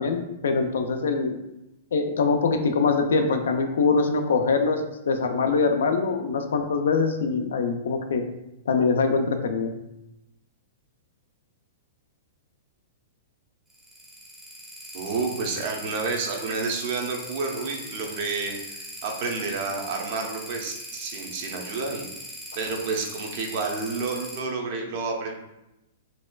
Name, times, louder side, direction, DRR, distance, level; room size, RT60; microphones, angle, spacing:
voice 1, 0.0-1.4 1.9-8.2 8.7-9.7, left 4 dB, 85° left, 6 dB, 0.4 m, -23 dB
sound 1, 13.7-24.4, equal, 10° right, 0.6 m, -40 dB
voice 2, 14.9-22.1 22.5-25.3, right 4 dB, 50° right, 2 dB, 0.6 m, -30 dB
4.1 x 2.3 x 2.2 m, 0.90 s
hypercardioid pair, 145°, 0 cm